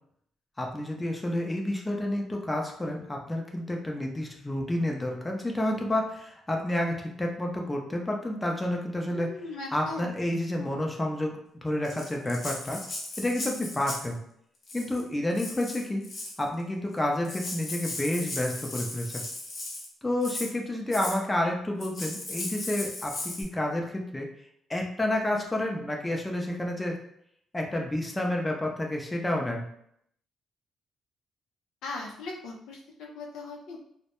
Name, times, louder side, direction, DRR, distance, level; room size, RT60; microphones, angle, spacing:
voice 1, 0.6-9.4 9.7-12.8 13.2-14.2 14.7-16.1 16.4-19.2 20.0-24.3 24.7-27.0 27.5-29.7, left 1 dB, 15° left, 0 dB, 0.5 m, -30 dB
voice 2, 9.1-10.1 31.8-33.8, left 3 dB, 85° left, 0 dB, 0.4 m, -39 dB
Rattle (instrument), 11.8-14.1 14.6-15.0 15.3-16.4 17.0-17.1 17.2-19.9 20.2-20.5 20.9-21.2 21.8-23.4, left 2 dB, 50° left, 0.7 m, -37 dB
2.2 x 2.1 x 2.9 m, 0.70 s
cardioid pair, 90°, 0 cm